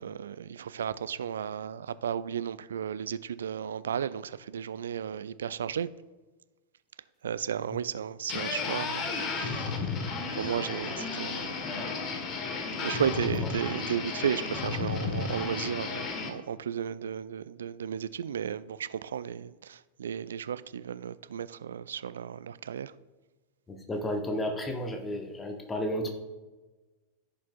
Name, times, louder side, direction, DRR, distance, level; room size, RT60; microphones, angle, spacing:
voice 1, 0.0-5.9 7.2-9.9 10.3-11.6 12.8-22.9, right 8 dB, 65° right, 0.3 m, -34 dB
sound 1, 8.3-16.3, left 4 dB, 35° left, 1.1 m, -33 dB
voice 2, 23.7-26.1, equal, 15° left, 0.9 m, -32 dB
15.0 x 5.8 x 2.3 m
figure-of-eight pair, 90°, 0 cm